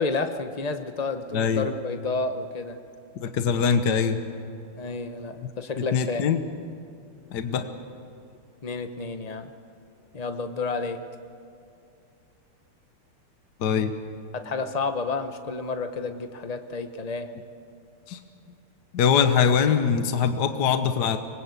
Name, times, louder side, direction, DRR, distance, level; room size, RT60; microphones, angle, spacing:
voice 1, 0.0-2.8 4.8-6.3 8.6-9.5 10.1-11.0 14.3-17.3, left 4 dB, 80° left, 7 dB, 0.3 m, -30 dB
voice 2, 1.3-1.7 3.2-4.2 5.9-6.4 7.3-7.7 13.6-13.9 18.1-18.2 18.9-21.2, left 7 dB, 55° left, 8 dB, 1.4 m, -22 dB
24.5 x 20.0 x 8.2 m, 2.5 s
omnidirectional pair, 2.4 m